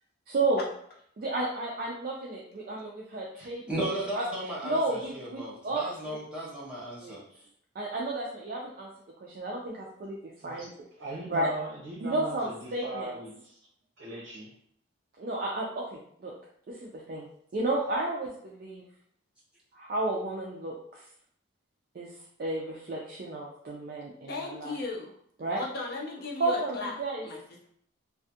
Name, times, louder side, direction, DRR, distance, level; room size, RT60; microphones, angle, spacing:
voice 1, 0.3-0.6 1.2-4.3 4.6-6.2 7.0-7.2 7.8-8.9 9.2-10.2 10.4-10.7 11.3-11.5 12.0-13.1 15.2-16.3 16.7-18.8 19.7-21.0 21.9-22.1 22.4-24.8 25.4-25.6 26.4-27.3, right 2 dB, 45° right, -3 dB, 0.3 m, -32 dB
voice 2, 3.3-7.4, right 1 dB, 5° right, -7 dB, 0.6 m, -36 dB
voice 3, 11.0-13.6 14.0-14.5, right 2 dB, 80° right, -6 dB, 0.7 m, -39 dB
voice 4, 24.3-25.1 25.5-26.9 27.2-27.4, left 3 dB, 50° left, -1 dB, 0.6 m, -36 dB
2.4 x 2.3 x 2.7 m, 0.66 s
head